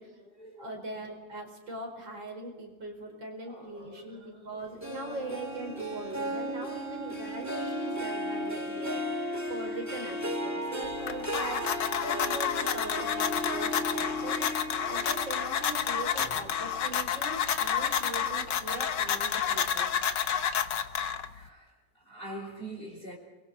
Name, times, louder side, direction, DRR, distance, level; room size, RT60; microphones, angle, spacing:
voice 1, 0.0-0.8 3.1-4.7 5.0-5.4 5.7-6.0 7.5-7.6 9.6-9.7 14.1-14.2 14.9-15.2 16.1-16.6 20.3-23.2, right 1 dB, 30° left, 0 dB, 4.0 m, -47 dB
voice 2, 0.6-14.5 14.9-19.9, right 2 dB, 80° right, 2 dB, 5.5 m, -41 dB
Harp, 4.8-17.5 18.0-18.4 18.8-18.9, equal, 10° right, 1.8 m, -35 dB
sound 1, 10.8-21.5, left 8 dB, 70° left, 1.7 m, -30 dB
29.5 x 22.5 x 4.8 m, 1.3 s
omnidirectional pair, 2.0 m